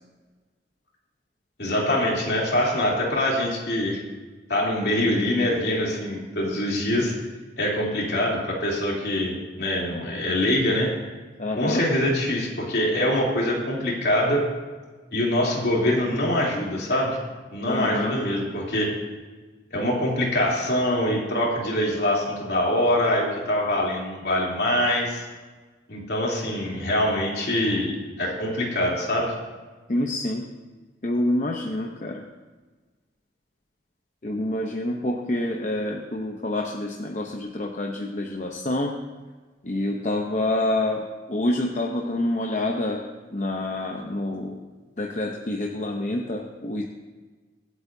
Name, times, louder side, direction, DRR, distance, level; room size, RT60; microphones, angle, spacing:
voice 1, 1.6-4.0 4.5-7.1 7.6-10.9 11.6-14.4 15.1-17.2 17.5-18.9 19.7-25.2 25.9-29.3, left 1 dB, 65° left, -4 dB, 3.2 m, -24 dB
voice 2, 11.4-11.9 17.7-18.2 29.9-30.5 31.0-32.2 34.2-38.9 39.6-43.0 43.3-44.6 45.0-46.8, left 1 dB, 40° left, 1 dB, 0.8 m, -27 dB
24.5 x 8.2 x 2.7 m, 1.3 s
head